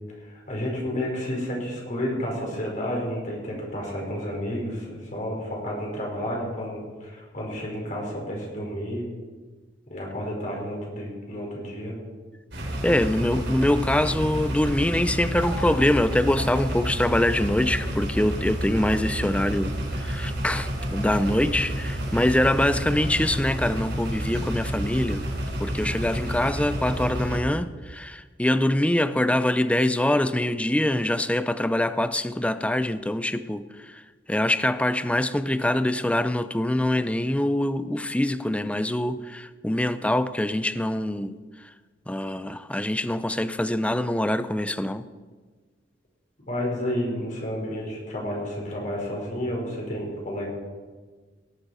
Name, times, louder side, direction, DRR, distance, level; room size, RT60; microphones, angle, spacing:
voice 1, 0.2-9.1 9.9-12.0 46.5-50.5, equal, 45° left, 4.8 m, -31 dB
sound 1, 12.5-27.4, equal, 75° right, 3.9 m, -30 dB
voice 2, 12.8-25.2 25.6-34.0 34.3-41.4 42.1-45.0, left 1 dB, 5° left, 0.5 m, -24 dB
18.0 x 11.0 x 4.9 m
head